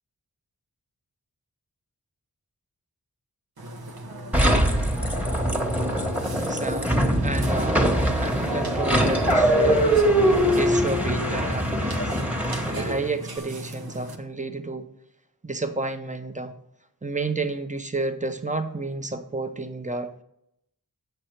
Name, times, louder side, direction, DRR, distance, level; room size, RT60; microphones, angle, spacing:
Burping eructation, 3.6-14.2, right 1 dB, 75° right, 1.0 m, -35 dB
sound 1, 4.3-13.1, right 1 dB, 5° right, 1.4 m, -22 dB
voice 1, 6.4-7.9 8.2-9.9 10.5-12.2 12.6-14.9 15.4-16.5 17.0-20.2, right 3 dB, 20° right, 7 dB, 0.9 m, -31 dB
7.9 x 6.6 x 4.6 m, 0.76 s
wide cardioid pair, 60°, 37 cm